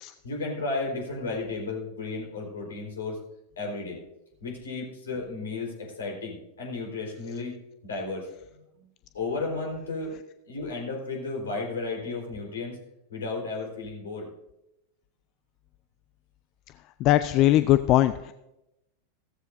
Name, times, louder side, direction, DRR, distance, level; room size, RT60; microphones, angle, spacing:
voice 1, 0.2-3.2 3.6-4.0 4.4-7.5 7.8-8.3 8.8-8.9 9.1-10.1 10.5-12.8 13.1-14.3, left 3 dB, 70° left, 0 dB, 4.3 m, -33 dB
voice 2, 17.0-18.3, left 14 dB, 40° left, 13 dB, 0.4 m, -20 dB
15.5 x 14.5 x 2.7 m, 0.89 s
figure-of-eight pair, 90°, 0 cm